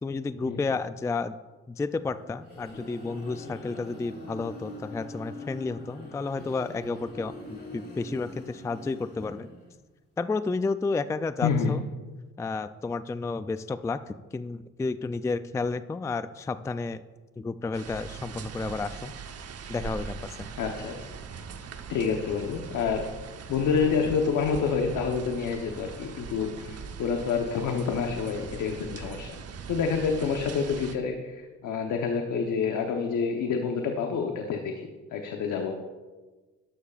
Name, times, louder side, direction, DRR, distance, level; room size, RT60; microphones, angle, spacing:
voice 1, 0.0-1.4 1.7-9.5 10.2-11.9 12.4-17.0 17.4-19.1 19.7-20.4, left 3 dB, 10° left, 13 dB, 0.3 m, -31 dB
sound 1, 2.1-9.8, left 1 dB, 35° left, 3.4 m, -43 dB
voice 2, 11.4-11.8 20.6-21.1 21.9-23.2 23.5-29.4 29.7-35.7, left 6 dB, 80° left, 4 dB, 1.0 m, -28 dB
sound 2, 17.7-30.9, right 6 dB, 55° right, 1.0 m, -41 dB
12.5 x 12.0 x 2.5 m, 1.3 s
cardioid pair, 90°, 30 cm